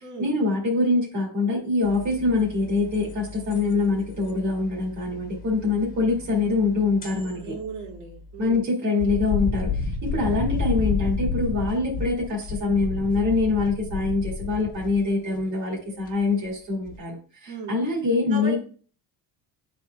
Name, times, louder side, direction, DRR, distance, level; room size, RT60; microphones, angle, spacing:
voice 1, 0.2-7.6 8.4-9.7 10.0-18.6, left 3 dB, 45° right, -3 dB, 2.1 m, -24 dB
sound 1, 1.8-8.6 9.0-15.1 16.1-16.5 16.9-17.0, left 4 dB, 20° left, 1.2 m, -32 dB
voice 2, 7.4-8.6 10.1-10.3 10.6-10.7 15.2-15.4 15.8-16.0 17.5-17.8 18.3-18.6, right 3 dB, 85° right, -2 dB, 2.5 m, -37 dB
11.0 x 4.3 x 2.3 m, 0.40 s
cardioid pair, 175°, 39 cm